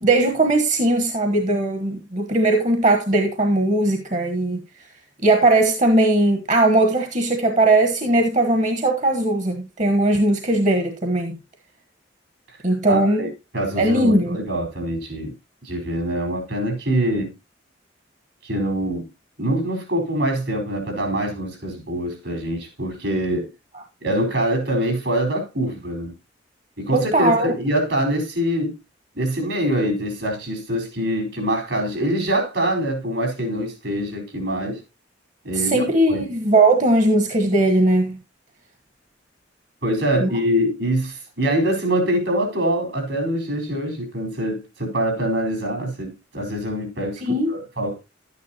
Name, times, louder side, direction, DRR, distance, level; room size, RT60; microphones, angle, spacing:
voice 1, 0.0-4.6 5.2-11.4 12.6-13.2 13.8-14.4 26.9-27.5 35.5-38.2 40.2-40.3 47.2-47.5, right 2 dB, 40° right, 1.2 m, -19 dB
voice 2, 12.9-13.3 13.5-15.3 15.6-17.3 18.4-19.1 19.4-23.5 24.0-26.1 26.8-28.8 29.1-34.8 35.4-36.2 39.8-48.0, right 1 dB, 75° right, 4.4 m, -24 dB
12.0 x 9.5 x 2.9 m
head